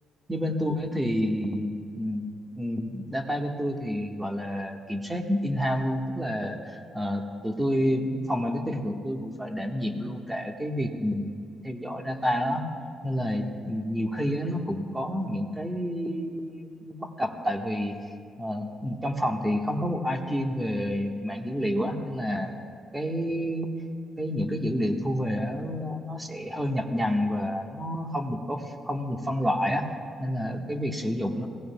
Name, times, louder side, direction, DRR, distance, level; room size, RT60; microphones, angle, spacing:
voice 1, 0.3-12.7 13.0-18.0 18.4-22.5 22.9-23.7 24.2-29.9 30.2-31.5, equal, 10° right, 2 dB, 1.4 m, -29 dB
22.0 x 17.5 x 2.3 m, 2.1 s
cardioid pair, 90°, 0 cm